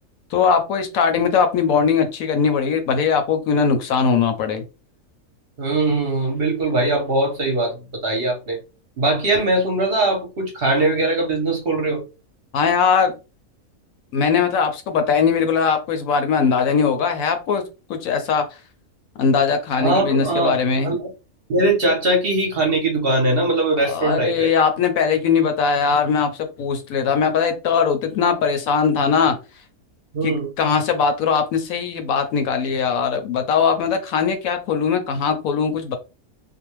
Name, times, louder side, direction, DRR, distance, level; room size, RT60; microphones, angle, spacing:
voice 1, 0.3-4.6 12.5-13.1 14.1-17.6 17.9-18.4 19.2-21.0 23.8-29.4 30.2-36.0, left 6 dB, 75° left, 1.0 m, -20 dB
voice 2, 5.6-7.8 8.0-8.6 9.0-12.0 19.8-20.6 20.8-21.1 21.5-24.5 30.1-30.5, right 2 dB, 50° right, 0.9 m, -21 dB
2.6 x 2.1 x 3.0 m
omnidirectional pair, 1.5 m